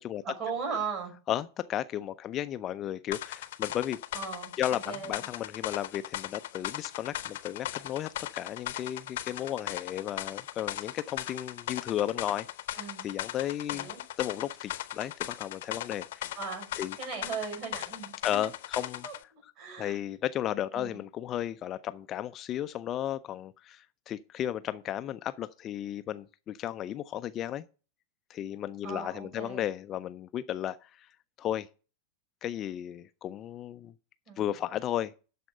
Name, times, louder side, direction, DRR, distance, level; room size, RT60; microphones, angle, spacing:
voice 1, 0.2-1.1 4.1-5.3 12.7-13.1 13.7-14.0 16.4-18.4 19.0-20.0 20.7-21.0 28.8-29.7 34.3-34.5, right 5 dB, 40° right, 5.7 m, -38 dB
voice 2, 1.3-4.0 4.6-12.5 12.7-13.9 14.2-16.2 16.8-16.9 18.2-19.0 19.8-27.6 28.3-31.1 31.4-31.7 32.4-33.9 34.4-35.1, left 11 dB, 30° left, 0.4 m, -34 dB
sound 1, 3.1-19.2, left 13 dB, 55° left, 0.7 m, -38 dB
12.0 x 4.3 x 6.6 m
figure-of-eight pair, 90°, 0 cm